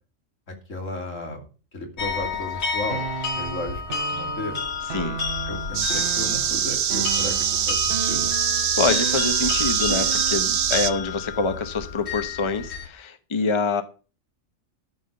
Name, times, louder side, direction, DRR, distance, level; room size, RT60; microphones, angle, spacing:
voice 1, 0.5-3.1 3.3-4.6 5.4-8.3, left 2 dB, 75° left, 3.2 m, -34 dB
sound 1, 2.0-12.9, left 5 dB, 55° left, 1.6 m, -31 dB
sound 2, 2.9-10.8, right 8 dB, 55° right, 0.8 m, -35 dB
sound 3, 5.7-10.9, right 9 dB, 90° right, 1.2 m, -24 dB
voice 2, 8.8-13.8, left 4 dB, 25° left, 0.9 m, -26 dB
13.5 x 5.5 x 6.8 m
omnidirectional pair, 1.3 m